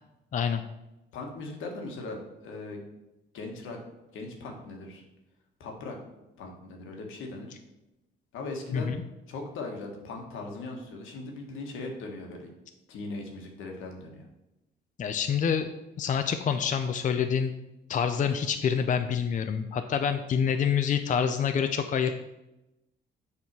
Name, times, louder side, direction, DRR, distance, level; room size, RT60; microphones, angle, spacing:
voice 1, 1.1-2.2 2.4-2.8 3.3-3.8 4.1-5.0 5.6-6.0 6.4-7.5 8.3-8.9 9.3-12.5 12.9-14.3, left 3 dB, 85° left, 2 dB, 1.4 m, -39 dB
voice 2, 15.0-15.7 16.0-17.5 17.9-22.1, left 7 dB, 40° left, 8 dB, 0.5 m, -27 dB
7.0 x 3.6 x 6.0 m, 0.94 s
cardioid pair, 90°, 20 cm